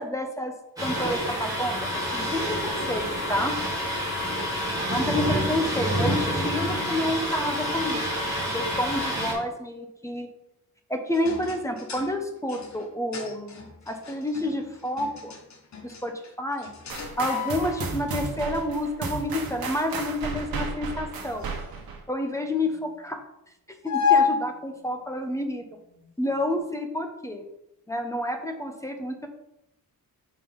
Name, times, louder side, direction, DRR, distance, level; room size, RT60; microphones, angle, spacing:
voice 1, 0.0-3.5 4.9-10.3 10.9-15.3 15.8-16.7 17.2-21.5 22.1-23.2 23.8-25.6 26.2-27.4 27.9-29.3, left 1 dB, 10° left, 4 dB, 0.6 m, -29 dB
Thunder, 0.8-9.3, equal, 10° right, 2.1 m, -28 dB
sound 1, 11.1-18.0 19.0-22.9 23.8-24.5 25.4-25.7 26.0-26.5, left 6 dB, 50° left, 1.1 m, -31 dB
sound 2, 16.9-22.0, right 4 dB, 80° right, 1.1 m, -34 dB
5.0 x 4.4 x 5.4 m, 0.85 s
wide cardioid pair, 180°, 36 cm